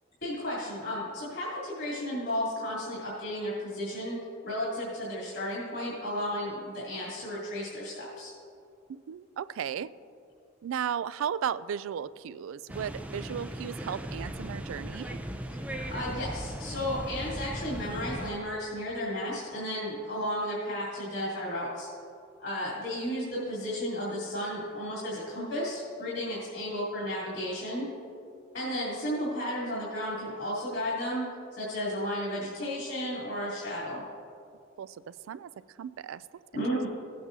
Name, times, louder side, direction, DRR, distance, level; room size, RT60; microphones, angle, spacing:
voice 1, 0.2-4.2 4.4-8.3 15.5-21.9 22.4-27.8 28.5-31.3 31.5-34.0 36.5-36.9, equal, 65° left, -8 dB, 2.9 m, -33 dB
voice 2, 8.9-9.9 10.6-15.2 23.4-23.5 34.8-35.5 35.8-36.2 36.5-36.9, right 8 dB, 85° right, 16 dB, 0.3 m, -35 dB
sound 1, 12.7-18.3, right 1 dB, 5° right, 0.5 m, -37 dB
17.5 x 8.6 x 2.7 m, 2.5 s
head